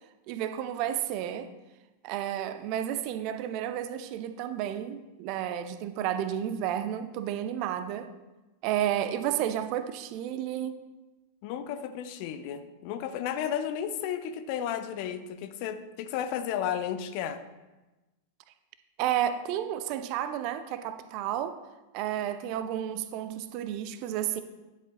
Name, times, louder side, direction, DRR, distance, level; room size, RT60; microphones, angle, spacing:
voice 1, 0.3-1.5 2.0-8.1 8.6-10.8 19.0-21.6 21.9-24.4, right 10 dB, 45° right, 10 dB, 0.5 m, -31 dB
voice 2, 11.4-17.4, left 9 dB, 45° left, 10 dB, 0.5 m, -33 dB
11.0 x 7.5 x 2.2 m, 1.1 s
figure-of-eight pair, 90°, 0 cm